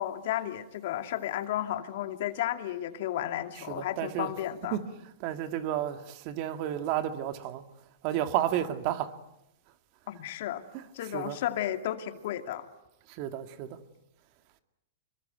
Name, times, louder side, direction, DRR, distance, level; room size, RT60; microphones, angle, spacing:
voice 1, 0.0-4.8 10.1-10.6 10.9-12.7, left 12 dB, 60° left, 2.4 m, -33 dB
voice 2, 3.7-4.3 4.7-4.8 5.2-7.6 8.0-9.1 10.7-10.8 11.1-11.4 13.1-13.8, right 12 dB, 45° right, 2.2 m, -31 dB
26.0 x 22.5 x 9.2 m
hypercardioid pair, 130°, 0 cm